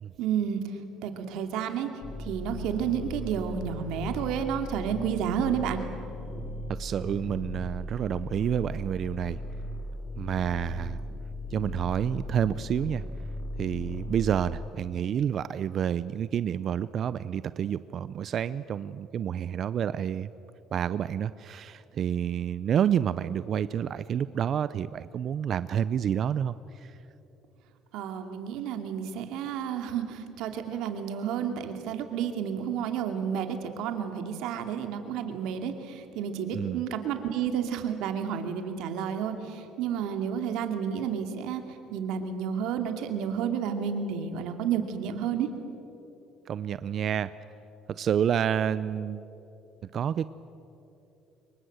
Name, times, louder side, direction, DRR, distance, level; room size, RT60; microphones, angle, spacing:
voice 1, 0.2-1.9 2.2-5.8 27.9-45.5, right 8 dB, 75° right, 6 dB, 2.6 m, -31 dB
sound 1, 2.0-14.7, left 1 dB, 35° left, 2.3 m, -37 dB
voice 2, 6.8-9.4 10.2-11.0 11.5-13.0 13.6-20.3 20.7-26.5 36.5-36.8 46.5-47.3 48.0-49.3 49.9-50.3, right 9 dB, 50° right, 15 dB, 0.5 m, -29 dB
25.5 x 23.0 x 7.9 m, 2.9 s
cardioid pair, 105°, 0 cm